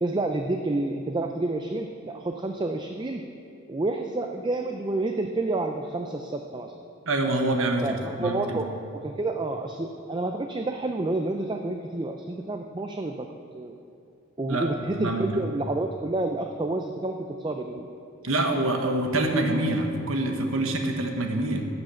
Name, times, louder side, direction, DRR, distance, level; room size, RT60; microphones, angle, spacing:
voice 1, 0.0-3.2 3.7-6.7 7.8-13.3 13.5-13.8 14.4-17.9, right 2 dB, 20° right, 4 dB, 0.4 m, -29 dB
voice 2, 7.1-7.8 8.2-8.6 14.5-14.7 14.9-15.2 18.2-21.6, right 2 dB, 75° right, 3 dB, 1.1 m, -25 dB
11.5 x 6.0 x 7.6 m, 2.5 s
head